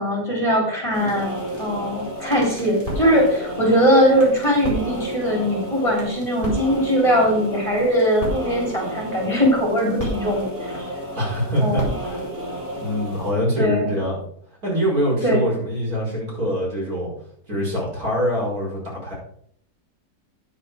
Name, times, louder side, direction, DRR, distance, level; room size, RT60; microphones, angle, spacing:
voice 1, 0.0-1.3 1.6-10.9 11.6-11.9 13.6-13.9 15.2-15.4, equal, 20° left, -2 dB, 3.6 m, -20 dB
sound 1, 0.9-13.3, equal, 20° right, 4.6 m, -31 dB
voice 2, 11.2-12.2 12.8-14.2 14.6-17.1 17.5-19.1, equal, 60° right, -5 dB, 5.6 m, -24 dB
9.7 x 8.2 x 5.0 m, 0.65 s
omnidirectional pair, 1.7 m